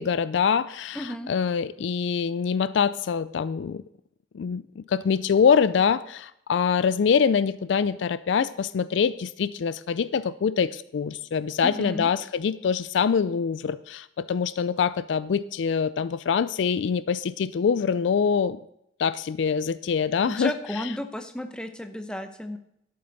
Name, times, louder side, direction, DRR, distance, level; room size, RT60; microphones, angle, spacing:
voice 1, 0.0-3.8 4.3-18.6 19.0-20.5, left 6 dB, 70° left, 16 dB, 0.4 m, -24 dB
voice 2, 0.9-1.3 11.6-12.1 20.3-22.6, left 1 dB, 5° left, 7 dB, 0.7 m, -33 dB
11.5 x 7.8 x 4.0 m, 0.76 s
head